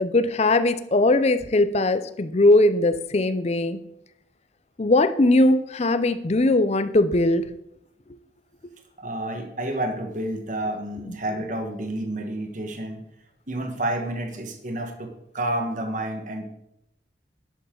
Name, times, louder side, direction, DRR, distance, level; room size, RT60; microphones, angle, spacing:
voice 1, 0.0-3.8 4.8-7.5 11.1-11.2, left 2 dB, 35° left, 11 dB, 0.6 m, -20 dB
voice 2, 9.0-13.0 13.5-16.4, right 1 dB, 45° right, 5 dB, 1.4 m, -30 dB
11.0 x 8.4 x 3.8 m, 0.81 s
head